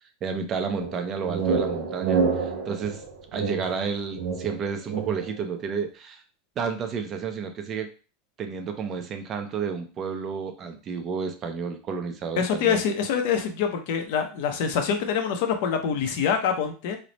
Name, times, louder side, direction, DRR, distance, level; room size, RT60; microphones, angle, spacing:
voice 1, 0.2-3.0 3.3-6.2 6.6-7.9 8.4-12.8, right 6 dB, 25° right, 6 dB, 0.5 m, -31 dB
sound 1, 0.8-5.4, right 5 dB, 70° right, 0.9 m, -28 dB
voice 2, 12.4-17.0, left 7 dB, 50° left, 5 dB, 0.6 m, -25 dB
3.1 x 2.0 x 3.9 m, 0.35 s
supercardioid pair, 170°, 0 cm